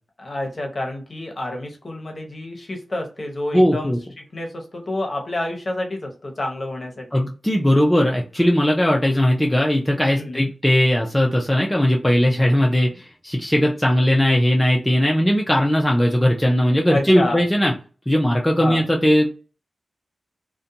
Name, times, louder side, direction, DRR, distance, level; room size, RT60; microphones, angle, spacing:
voice 1, 0.2-7.2 10.2-10.5 16.9-17.4 18.6-18.8, left 1 dB, 40° left, 2 dB, 0.8 m, -29 dB
voice 2, 3.5-4.0 7.1-17.7 18.1-19.3, equal, 10° left, 0 dB, 0.4 m, -18 dB
2.5 x 2.1 x 2.6 m, 0.35 s
wide cardioid pair, 75°, 0 cm